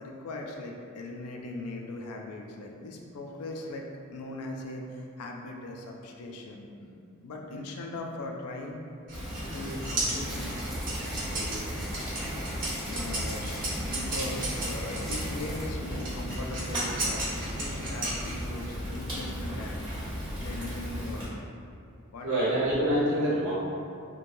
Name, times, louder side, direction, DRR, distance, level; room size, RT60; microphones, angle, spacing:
voice 1, 0.0-8.8 9.5-10.7 12.6-21.4 22.1-22.6, left 2 dB, 85° left, 1 dB, 0.4 m, -40 dB
Fire, 9.1-21.3, equal, 20° right, 1.0 m, -36 dB
sound 1, 9.1-15.3 16.0-18.6, right 2 dB, 40° right, 0.6 m, -34 dB
sound 2, 10.2-15.7, equal, ahead, 0.4 m, -40 dB
voice 2, 11.3-11.6 14.8-15.0 22.2-23.5, right 1 dB, 75° right, -10 dB, 1.1 m, -27 dB
3.1 x 2.2 x 2.5 m, 2.5 s
head